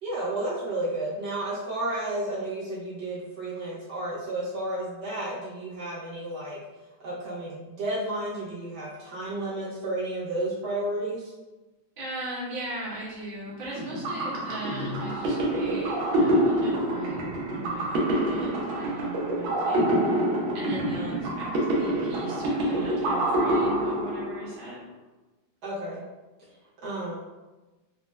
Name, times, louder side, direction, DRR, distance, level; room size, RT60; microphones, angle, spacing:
voice 1, 0.0-6.6 7.0-11.2 25.6-26.0 26.8-27.2, right 1 dB, 65° right, -8 dB, 1.2 m, -32 dB
voice 2, 12.0-20.2 20.5-21.5 21.8-24.8, right 2 dB, 40° right, -8 dB, 0.8 m, -39 dB
sound 1, 13.8-24.6, right 1 dB, 80° right, 1.5 m, -26 dB
4.1 x 2.1 x 2.2 m, 1.1 s
omnidirectional pair, 2.2 m